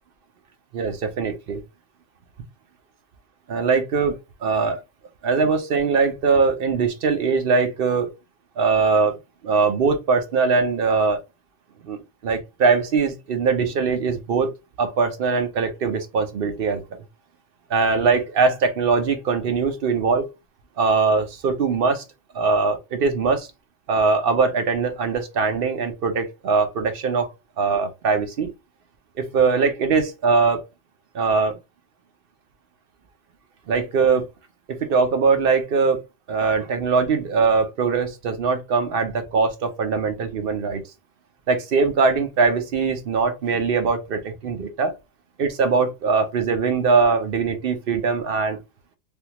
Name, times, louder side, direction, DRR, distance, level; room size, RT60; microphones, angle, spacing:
voice 1, 0.7-1.6 3.5-4.8 5.2-8.1 8.6-9.2 9.4-11.2 11.8-12.0 12.2-14.5 14.8-17.0 17.7-20.3 20.8-22.0 22.3-23.5 23.9-28.5 29.2-30.6 31.1-31.6 33.7-34.3 34.7-36.0 36.3-40.8 41.5-44.9 45.4-48.6, right 4 dB, 55° right, 0.8 m, -21 dB
3.4 x 2.3 x 2.8 m
omnidirectional pair, 1.3 m